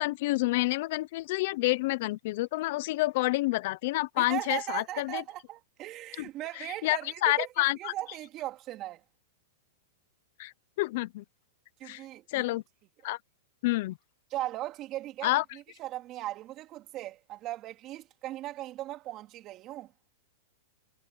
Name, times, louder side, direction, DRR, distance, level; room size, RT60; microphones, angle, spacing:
voice 1, 0.0-5.2 6.2-6.3 6.8-7.9 10.4-11.2 11.8-12.0 12.3-12.6 13.0-13.2 13.6-14.0 15.2-15.4, left 20 dB, 55° left, 0.7 m, -28 dB
voice 2, 4.2-7.5 7.7-9.0 11.8-12.5 14.3-19.9, right 15 dB, 35° right, 3.2 m, -38 dB
hypercardioid pair, 135°, 0 cm